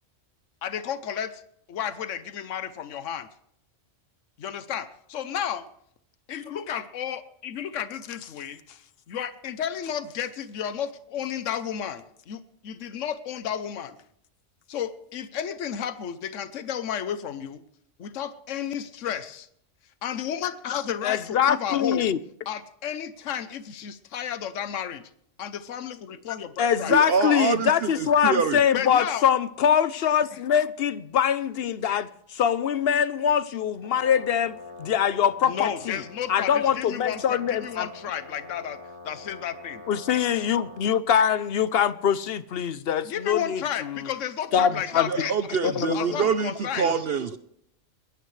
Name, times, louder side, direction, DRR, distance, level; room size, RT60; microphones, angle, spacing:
voice 1, 0.6-1.4 1.7-3.3 4.4-5.7 6.3-8.6 9.1-14.0 14.7-17.6 18.0-19.5 20.0-22.1 22.5-25.0 25.4-27.0 28.7-29.2 30.3-30.4 35.4-38.8 39.0-39.8 43.0-45.1 45.9-46.9, left 9 dB, 80° left, 1.2 m, -32 dB
voice 2, 21.0-22.2 26.6-36.0 36.3-37.9 39.9-44.1 44.5-45.3 45.6-46.2 46.8-47.0, left 8 dB, 55° left, 0.8 m, -23 dB
voice 3, 26.9-28.6 45.1-47.4, right 6 dB, 55° right, 0.9 m, -25 dB
Brass instrument, 33.8-40.9, left 2 dB, 20° left, 4.8 m, -44 dB
21.5 x 16.0 x 3.3 m
omnidirectional pair, 1.3 m